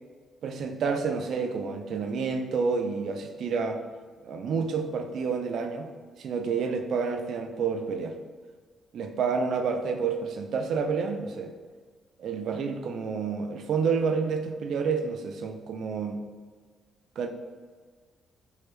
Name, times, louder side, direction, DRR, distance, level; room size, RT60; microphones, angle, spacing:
voice 1, 0.4-3.8 4.2-5.9 6.2-8.2 8.9-11.5 12.2-16.2 17.2-17.3, right 5 dB, 60° right, 6 dB, 0.3 m, -29 dB
4.5 x 2.1 x 3.3 m, 1.5 s
cardioid pair, 155°, 0 cm